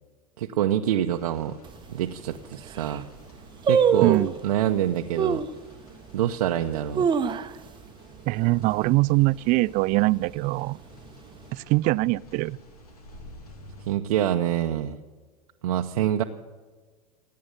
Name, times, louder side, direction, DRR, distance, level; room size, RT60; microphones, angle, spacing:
voice 1, 0.4-1.6 1.9-3.1 3.6-5.4 6.1-7.1 13.9-15.0 15.6-16.2, right 11 dB, 80° right, 0.8 m, -26 dB
sound 1, 1.1-14.0, left 1 dB, 85° left, 2.6 m, -50 dB
sound 2, 1.6-1.7 2.4-2.5 2.7-3.1 3.7-4.4 5.2-5.6 6.1-6.2 6.7-7.8 8.1-8.2 8.6-8.9 9.3-9.7 10.3-11.1 11.4-11.5, right 6 dB, 25° right, 0.8 m, -24 dB
voice 2, 4.0-4.3 8.3-10.8 11.5-12.6, right 21 dB, 45° right, 0.4 m, -22 dB
17.5 x 8.6 x 9.2 m
hypercardioid pair, 95°, 19 cm